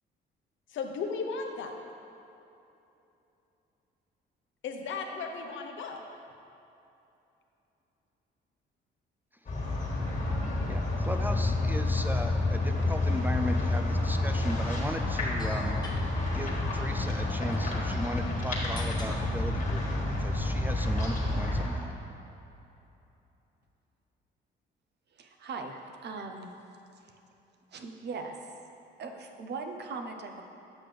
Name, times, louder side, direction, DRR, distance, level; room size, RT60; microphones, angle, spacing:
voice 1, 0.7-1.7 4.6-6.0, left 5 dB, 75° left, 3 dB, 0.8 m, -35 dB
sound 1, 9.5-21.7, left 2 dB, 40° left, 1.7 m, -29 dB
voice 2, 10.7-15.8 16.3-21.9, equal, 10° right, 5 dB, 0.3 m, -37 dB
sound 2, 14.1-21.3, left 2 dB, 20° left, 1.1 m, -50 dB
voice 3, 25.1-26.5 27.7-28.4 29.0-30.4, right 4 dB, 60° right, 4 dB, 0.7 m, -39 dB
8.3 x 5.9 x 3.3 m, 2.9 s
cardioid pair, 90°, 20 cm